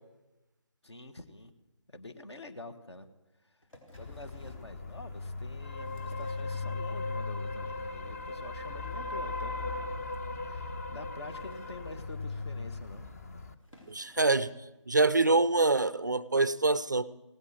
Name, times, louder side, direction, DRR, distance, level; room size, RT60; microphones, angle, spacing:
voice 1, 0.8-1.5 1.9-3.1 3.4-3.6 3.9-9.9 10.3-13.1, left 2 dB, 60° left, 7 dB, 1.3 m, -47 dB
sound 1, 3.6-4.7 5.5-7.1 7.5-7.9 8.2-8.4 8.6-8.7 8.9-9.0 9.4-9.5 10.1-10.2 11.1-12.5 13.2-13.3 13.6-14.7 15.5-15.6, left 1 dB, 80° left, 3.8 m, -57 dB
sound 2, 3.9-13.5, left 3 dB, 30° left, 0.7 m, -37 dB
voice 2, 13.9-14.5 14.9-17.1, right 3 dB, 35° right, 18 dB, 0.3 m, -25 dB
17.5 x 8.2 x 6.3 m, 1.0 s
figure-of-eight pair, 155°, 16 cm